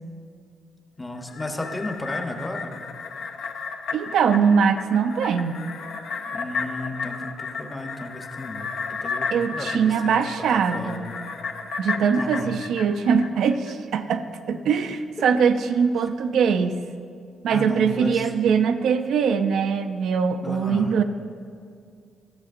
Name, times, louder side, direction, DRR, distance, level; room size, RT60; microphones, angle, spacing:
voice 1, 1.0-2.8 6.2-10.2 10.5-11.2 12.2-12.5 15.2-15.3 17.5-18.3 20.4-20.9, left 2 dB, 15° left, 4 dB, 0.7 m, -34 dB
sound 1, 1.2-13.7 14.1-14.2, left 5 dB, 75° left, 0.6 m, -33 dB
voice 2, 3.9-5.6 9.3-11.1 11.8-16.8 17.4-21.0, right 6 dB, 80° right, 8 dB, 0.4 m, -22 dB
13.5 x 7.0 x 2.5 m, 2.3 s
cardioid pair, 115°, 0 cm